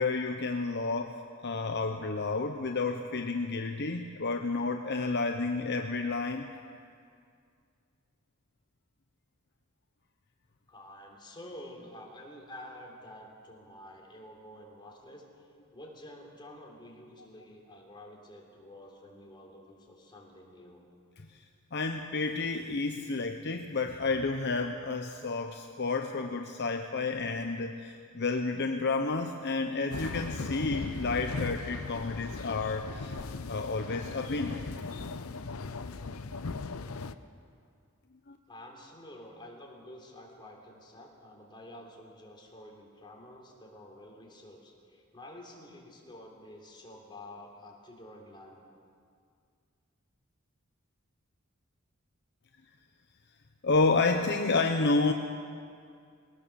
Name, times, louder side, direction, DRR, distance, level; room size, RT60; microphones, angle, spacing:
voice 1, 0.0-6.5 21.7-33.2 33.5-34.6 38.3-38.4 53.6-55.1, left 3 dB, 55° left, 5 dB, 0.9 m, -30 dB
voice 2, 10.7-20.9 38.5-48.6, left 1 dB, 20° left, -1 dB, 3.6 m, -49 dB
sound 1, 29.9-37.1, left 3 dB, 80° left, 0.7 m, -38 dB
21.0 x 18.5 x 7.0 m, 2.3 s
head